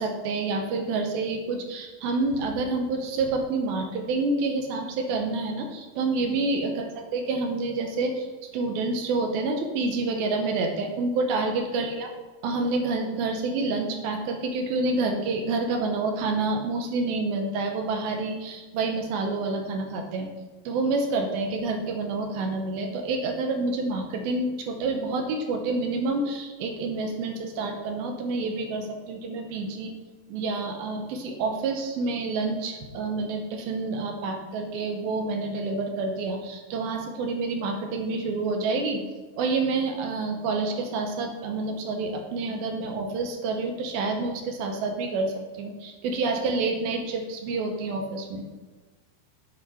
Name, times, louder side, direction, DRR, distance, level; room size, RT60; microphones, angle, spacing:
voice 1, 0.0-8.3 8.5-12.1 12.4-20.3 20.7-29.9 30.3-39.0 39.4-48.5, right 3 dB, 75° right, 3 dB, 2.7 m, -28 dB
7.1 x 4.7 x 5.7 m, 1.3 s
omnidirectional pair, 4.5 m